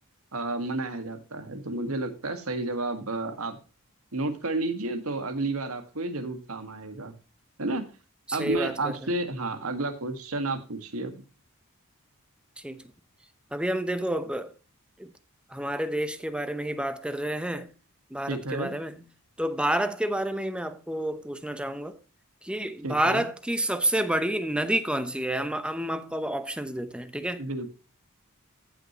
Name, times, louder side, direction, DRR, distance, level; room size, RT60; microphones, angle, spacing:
voice 1, 0.3-3.6 4.1-7.1 7.6-7.9 8.3-11.1 18.3-18.7 22.8-23.3 27.4-27.7, right 2 dB, 75° right, 1.8 m, -31 dB
voice 2, 8.3-9.0 12.6-12.8 13.5-14.5 15.0-15.1 15.5-17.7 18.1-19.0 19.4-22.0 22.4-27.4, right 1 dB, 5° right, 0.8 m, -29 dB
14.5 x 6.4 x 3.0 m
head